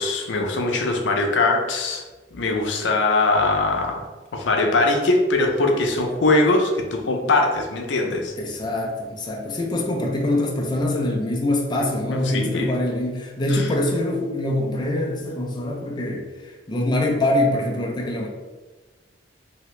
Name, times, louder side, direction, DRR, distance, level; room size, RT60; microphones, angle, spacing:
voice 1, 0.0-2.0 2.3-4.1 4.3-8.3 11.8-12.7 13.5-13.7, left 2 dB, 90° left, 2 dB, 0.5 m, -21 dB
voice 2, 8.4-18.3, left 1 dB, 25° left, -1 dB, 0.4 m, -24 dB
2.9 x 2.7 x 3.1 m, 1.3 s
head